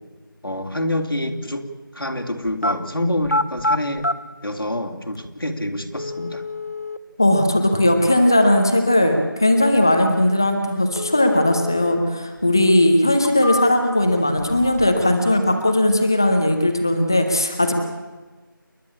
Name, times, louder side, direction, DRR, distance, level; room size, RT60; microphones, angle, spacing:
voice 1, 0.4-1.7 1.9-4.1 4.4-6.4, left 1 dB, 85° left, 3 dB, 3.1 m, -26 dB
sound 1, 2.5-2.8 3.2-4.2 5.1-5.2 6.0-7.0 11.0-12.0 12.4-12.5 13.1-14.0 14.4-15.1 15.4-16.0, left 2 dB, 45° left, 1.0 m, -27 dB
voice 2, 7.2-17.7, left 1 dB, 10° left, 5 dB, 0.8 m, -18 dB
29.0 x 12.0 x 8.4 m, 1.3 s
figure-of-eight pair, 175°, 12 cm